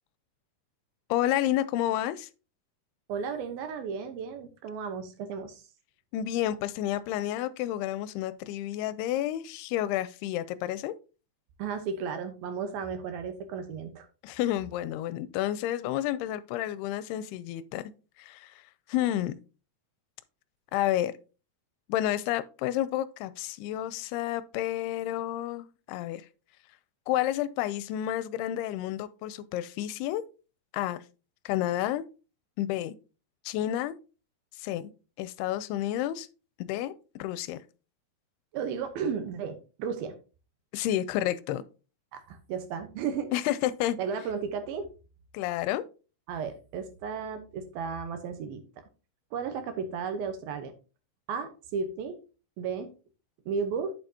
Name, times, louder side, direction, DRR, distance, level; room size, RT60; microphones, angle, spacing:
voice 1, 1.1-2.3 6.1-10.9 14.2-17.9 18.2-18.5 18.9-19.4 20.7-21.1 21.9-26.2 27.1-30.2 30.7-31.0 31.5-32.0 32.6-33.0 33.5-34.0 34.6-34.9 35.2-36.3 36.6-37.6 40.7-41.6 43.3-44.0 45.3-45.8, left 13 dB, 85° left, 2.5 m, -30 dB
voice 2, 3.1-5.6 11.6-14.1 38.5-40.2 42.1-43.3 44.0-44.9 46.3-48.6 49.3-50.7 51.3-52.2 52.6-52.9 53.5-53.9, right 6 dB, 75° right, 2.6 m, -34 dB
8.5 x 7.8 x 2.8 m
omnidirectional pair, 4.7 m